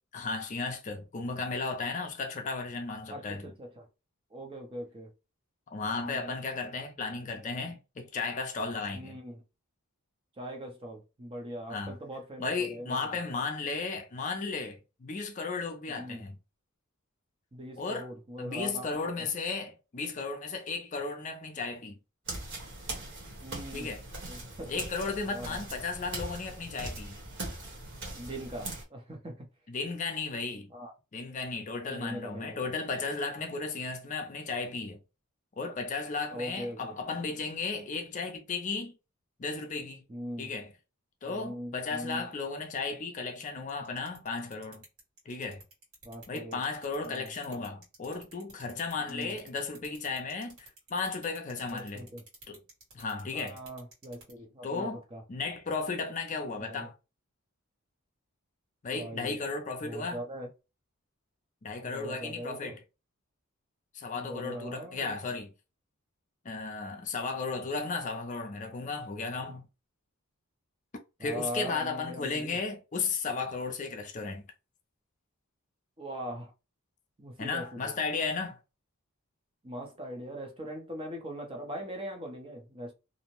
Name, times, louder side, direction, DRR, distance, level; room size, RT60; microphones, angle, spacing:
voice 1, 0.1-3.5 5.7-9.2 11.7-11.9 12.4-16.4 17.8-18.1 18.4-22.0 23.7-24.0 24.7-27.2 29.7-30.7 31.1-35.0 35.6-39.0 39.4-40.0 40.4-40.7 41.2-44.8 45.3-45.6 46.3-52.1 52.5-52.6 52.9-53.6 54.6-55.0 55.3-56.9 58.8-60.2 61.6-62.8 63.9-65.5 66.4-69.7 71.2-74.4 77.4-78.6, left 4 dB, 35° left, 0.4 m, -35 dB
voice 2, 3.1-3.9 4.3-5.1 6.0-6.3 8.9-9.4 10.4-13.0 15.9-16.3 17.5-19.0 23.4-23.9 24.3-24.8 25.3-25.6 28.1-29.5 30.7-30.9 31.9-32.7 36.3-37.0 40.1-40.5 41.2-42.3 46.0-46.6 47.0-47.3 49.1-49.3 51.7-52.2 53.3-55.2 56.6-56.9 58.9-59.4 59.8-60.5 61.8-62.8 64.1-65.3 71.2-72.6 76.0-76.5 77.2-77.9 79.6-82.9, equal, 25° right, 0.5 m, -41 dB
sound 1, 22.2-28.8, right 2 dB, 55° right, 1.0 m, -40 dB
sound 2, 43.7-54.3, right 3 dB, 80° right, 1.5 m, -51 dB
2.6 x 2.0 x 3.0 m
head